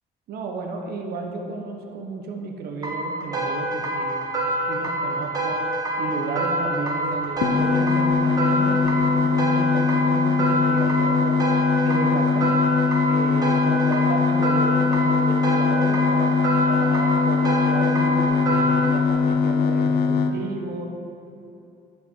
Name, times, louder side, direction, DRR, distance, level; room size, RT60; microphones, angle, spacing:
voice 1, 0.3-4.2 4.7-5.6 6.0-11.4 11.8-12.5 13.0-20.9, right 3 dB, 70° right, 2 dB, 1.2 m, -33 dB
sound 1, 2.8-19.0, right 1 dB, 20° right, 1.4 m, -26 dB
sound 2, 7.4-20.3, left 5 dB, 75° left, 0.7 m, -21 dB
11.0 x 5.3 x 4.6 m, 2.6 s
cardioid pair, 110°, 17 cm